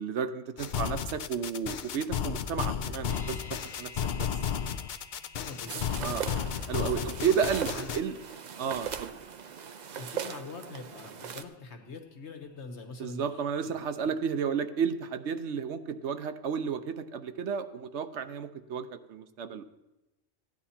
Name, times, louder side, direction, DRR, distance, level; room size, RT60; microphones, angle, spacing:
voice 1, 0.0-4.3 6.0-6.2 6.7-8.2 8.6-9.1 13.0-19.6, right 6 dB, 75° right, 10 dB, 1.0 m, -32 dB
sound 1, 0.6-8.0, left 8 dB, 55° left, 0.6 m, -33 dB
sound 2, 3.1-13.1 13.4-13.5, left 3 dB, 30° left, 3.0 m, -54 dB
voice 2, 5.4-6.4 6.8-7.0 7.3-7.9 10.0-13.8, left 4 dB, 75° left, 5 dB, 1.5 m, -44 dB
sound 3, 5.7-11.4, right 7 dB, 50° right, 0.6 m, -39 dB
15.5 x 9.9 x 4.3 m, 0.98 s
omnidirectional pair, 1.2 m